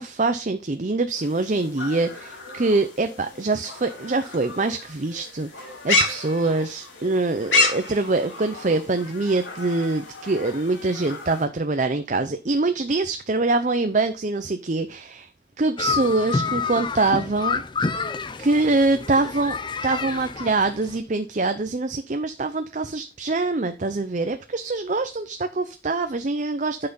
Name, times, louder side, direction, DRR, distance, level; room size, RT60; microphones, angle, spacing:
voice 1, 0.0-15.3 15.6-17.6 18.4-19.6 19.8-26.9, right 3 dB, 40° right, 8 dB, 0.6 m, -24 dB
sound 1, 1.2-11.5, left 2 dB, 90° left, 3.3 m, -30 dB
sound 2, 15.8-21.0, left 4 dB, 25° left, 0.5 m, -28 dB
9.9 x 5.9 x 4.0 m, 0.30 s
head